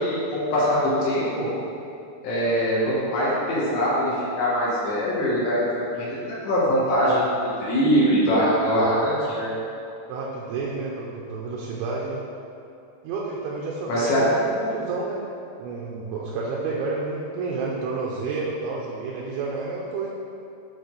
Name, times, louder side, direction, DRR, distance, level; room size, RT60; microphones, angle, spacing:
voice 1, 0.0-1.5 2.2-7.3 7.6-9.5 13.9-14.3, equal, 70° left, -8 dB, 3.6 m, -22 dB
voice 2, 10.1-12.2 13.0-15.3 15.6-20.1, right 3 dB, 80° right, -4 dB, 2.9 m, -30 dB
9.6 x 4.2 x 4.0 m, 2.7 s
omnidirectional pair, 5.7 m